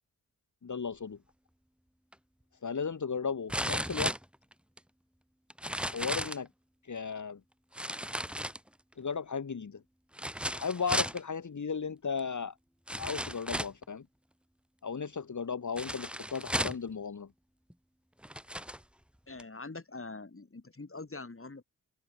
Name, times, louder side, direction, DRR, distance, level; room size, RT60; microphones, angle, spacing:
voice 1, 0.6-1.2 2.6-4.2 5.7-6.5 6.8-7.4 9.0-9.8 10.5-12.6 13.0-14.1 14.8-17.3, left 5 dB, 60° left, 1.9 m, -35 dB
sound 1, 2.1-2.2 3.5-4.8 5.5-6.5 7.7-8.9 10.1-11.2 12.2-12.3 12.9-13.8 15.8-16.9 17.7-17.8 18.2-18.8 19.4-19.5, equal, 5° right, 2.7 m, -35 dB
voice 2, 19.3-21.6, left 3 dB, 40° left, 5.7 m, -44 dB
cardioid pair, 45°, 34 cm